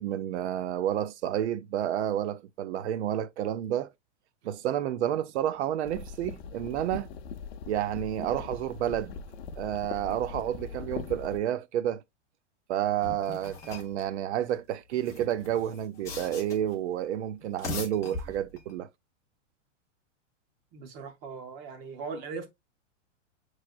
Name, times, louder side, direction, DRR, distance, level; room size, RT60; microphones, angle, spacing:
voice 1, 0.0-3.9 4.4-7.1 7.7-9.2 9.6-12.0 12.7-18.9, right 11 dB, 65° right, 0.6 m, -30 dB
sound 1, 5.8-11.4, left 6 dB, 55° left, 0.6 m, -41 dB
sound 2, 13.0-14.0 14.9-16.8 17.4-18.7, left 3 dB, 10° left, 0.3 m, -40 dB
voice 2, 20.7-22.5, right 5 dB, 25° right, 0.7 m, -39 dB
6.0 x 3.2 x 2.3 m
supercardioid pair, 155°, 37 cm